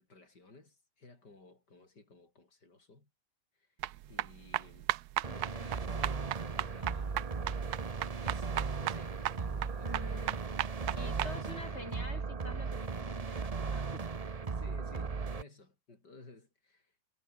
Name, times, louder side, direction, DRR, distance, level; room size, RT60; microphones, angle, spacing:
voice 1, 0.0-3.1 3.6-3.7 4.1-4.9 5.2-10.3 10.9-12.3 14.4-17.1, left 3 dB, 70° left, 5.9 m, -57 dB
sound 1, 3.8-11.3, right 14 dB, 70° right, 1.1 m, -36 dB
sound 2, 5.2-15.4, right 5 dB, 30° right, 0.7 m, -37 dB
voice 2, 9.8-10.5 11.0-14.1, left 2 dB, 35° left, 4.6 m, -47 dB
omnidirectional pair, 1.9 m